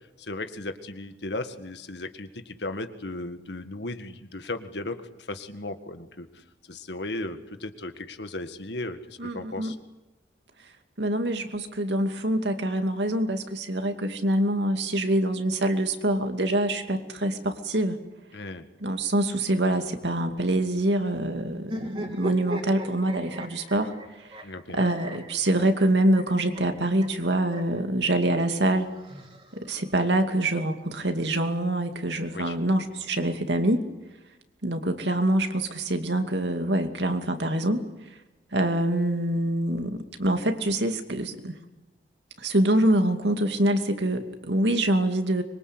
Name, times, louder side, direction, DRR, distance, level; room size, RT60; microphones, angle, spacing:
voice 1, 0.2-9.8 18.3-18.7 24.4-24.8 32.3-32.6, left 2 dB, 85° left, 8 dB, 1.8 m, -36 dB
voice 2, 9.2-9.7 11.0-18.0 18.8-23.9 24.2-24.5 24.7-28.9 29.5-33.8 34.6-37.8 38.5-41.6 42.4-45.4, right 1 dB, 85° right, 6 dB, 2.5 m, -25 dB
sound 1, 21.6-27.8 28.8-29.9, equal, 30° right, 3.2 m, -38 dB
25.0 x 23.0 x 8.1 m, 1.1 s
head